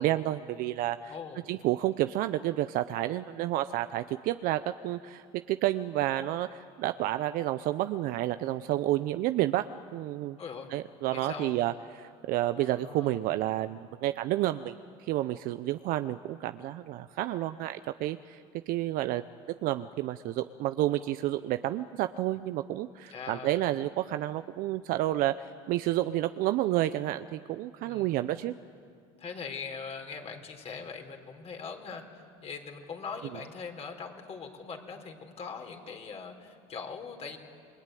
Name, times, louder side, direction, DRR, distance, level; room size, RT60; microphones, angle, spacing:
voice 1, 0.0-1.1 1.5-9.7 9.9-10.4 10.7-18.4 18.7-19.3 19.6-28.5, right 14 dB, 55° right, 11 dB, 0.7 m, -30 dB
voice 2, 1.1-1.4 10.4-10.7 11.1-11.6 12.5-13.2 23.1-23.7 27.8-28.2 29.2-37.4, left 5 dB, 35° left, 3 dB, 4.0 m, -41 dB
29.5 x 21.5 x 9.3 m, 2.3 s
supercardioid pair, 110°, 17 cm